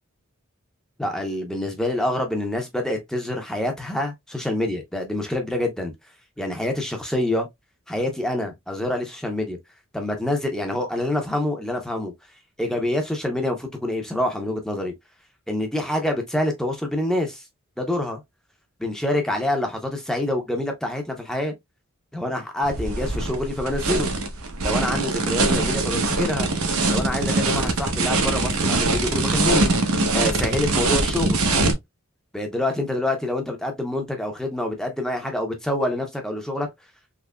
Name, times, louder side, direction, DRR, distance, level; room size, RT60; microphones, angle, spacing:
voice 1, 1.0-5.9 6.4-7.5 7.9-9.6 9.9-12.1 12.6-14.9 15.5-17.4 17.8-18.2 18.8-21.5 22.1-24.1 24.6-26.5 26.9-29.7 30.1-31.5 32.3-36.7, left 1 dB, 5° left, 0.7 m, -26 dB
sound 1, 22.6-31.7, right 2 dB, 85° right, 0.9 m, -22 dB
3.6 x 3.1 x 2.2 m
head